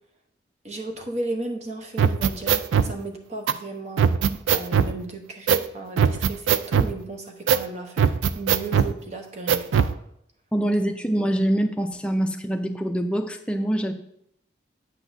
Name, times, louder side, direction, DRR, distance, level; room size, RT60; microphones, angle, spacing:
voice 1, 0.6-8.1 8.3-9.9, right 2 dB, 35° right, 4 dB, 0.9 m, -35 dB
sound 1, 2.0-2.9 3.5-3.6 4.0-4.9 5.5-5.7 6.0-6.9 7.5-7.7 8.0-8.9 9.5-9.9, right 7 dB, 90° right, 0.4 m, -20 dB
voice 2, 10.5-13.9, right 1 dB, 5° left, 4 dB, 0.5 m, -24 dB
9.0 x 8.2 x 2.7 m, 0.74 s
head